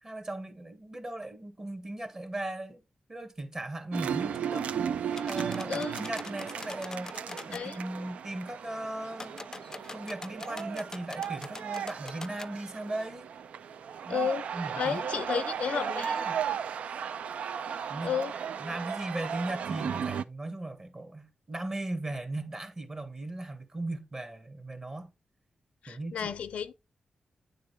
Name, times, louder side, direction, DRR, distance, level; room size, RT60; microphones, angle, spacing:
voice 1, 0.0-2.8 3.1-9.4 9.9-13.3 14.0-16.4 17.9-18.1 18.6-25.1 25.9-26.3, right 1 dB, 30° right, 1.9 m, -38 dB
sound 1, 3.9-20.2, right 8 dB, 85° right, 0.3 m, -35 dB
sound 2, 5.1-7.6 9.1-12.5, left 3 dB, 30° left, 0.4 m, -44 dB
voice 2, 5.7-6.0 7.5-7.8 14.1-14.4 14.8-16.1 18.0-18.3 25.8-26.7, left 7 dB, 85° left, 0.5 m, -32 dB
9.4 x 3.8 x 3.3 m
cardioid pair, 75°, 2 cm